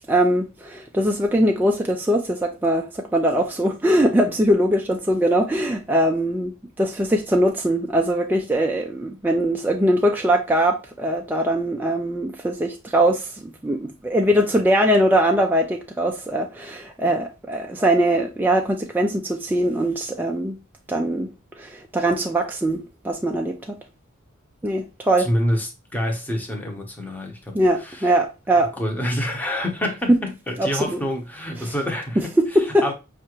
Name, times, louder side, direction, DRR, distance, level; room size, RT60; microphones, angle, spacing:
voice 1, 0.1-6.5 6.8-20.6 20.9-21.3 21.6-23.8 24.6-25.3 27.5-28.7 30.1-30.2 30.6-31.0 31.6-31.7 32.2-32.9, right 1 dB, 10° right, 0.3 m, -21 dB
voice 2, 25.2-28.1 28.7-32.2 32.8-32.9, equal, 10° left, 0.8 m, -27 dB
5.5 x 2.4 x 2.9 m
head